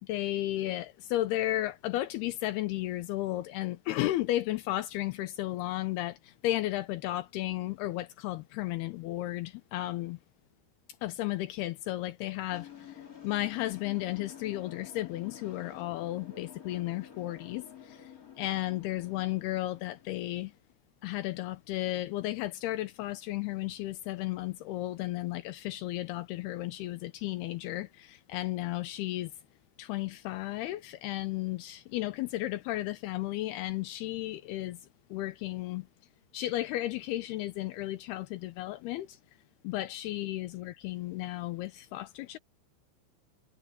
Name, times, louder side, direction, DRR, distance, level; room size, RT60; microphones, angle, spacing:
voice 1, 0.0-10.2 11.0-20.5 21.0-29.3 29.8-34.8 35.1-35.9 36.3-39.2 39.6-42.4, left 16 dB, 90° left, 2.3 m, -34 dB
sound 1, 12.5-20.3, left 9 dB, 45° left, 1.1 m, -50 dB
omnidirectional pair, 5.5 m